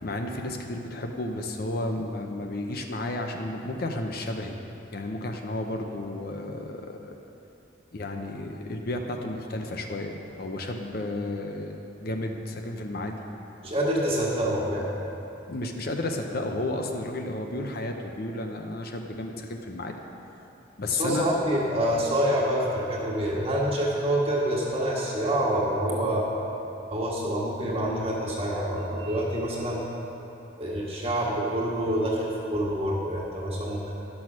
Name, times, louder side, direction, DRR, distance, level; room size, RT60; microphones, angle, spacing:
voice 1, 0.0-4.6 4.9-7.1 7.9-13.2 15.5-19.9 20.8-21.3, left 2 dB, 50° left, 3 dB, 0.7 m, -32 dB
voice 2, 13.6-14.9 20.9-26.3 26.9-29.8 30.6-33.9, right 1 dB, 30° right, -5 dB, 1.7 m, -27 dB
12.0 x 6.2 x 6.1 m, 3.0 s
head